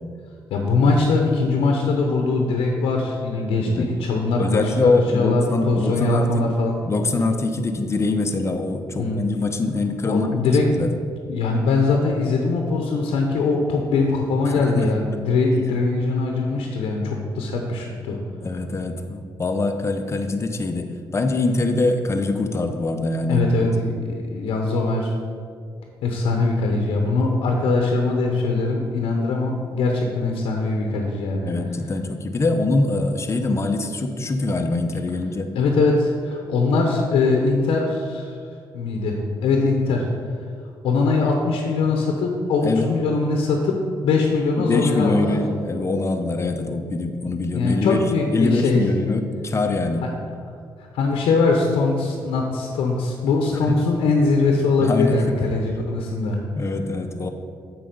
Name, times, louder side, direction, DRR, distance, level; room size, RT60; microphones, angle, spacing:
voice 1, 0.5-6.7 9.0-9.2 10.1-10.7 11.3-18.2 23.3-25.1 26.0-31.5 35.5-38.3 38.7-40.0 40.8-43.7 44.0-45.4 47.5-48.8 50.0-50.1 50.9-56.4, left 3 dB, 85° left, 2 dB, 0.8 m, -21 dB
voice 2, 4.4-6.5 6.8-10.3 10.7-10.9 14.4-14.9 18.4-23.7 31.4-35.5 42.6-42.9 44.6-48.0 48.3-50.1 54.8-55.2 56.5-57.3, left 2 dB, 30° left, 5 dB, 0.8 m, -23 dB
7.5 x 4.8 x 5.2 m, 2.2 s
cardioid pair, 80°, 9 cm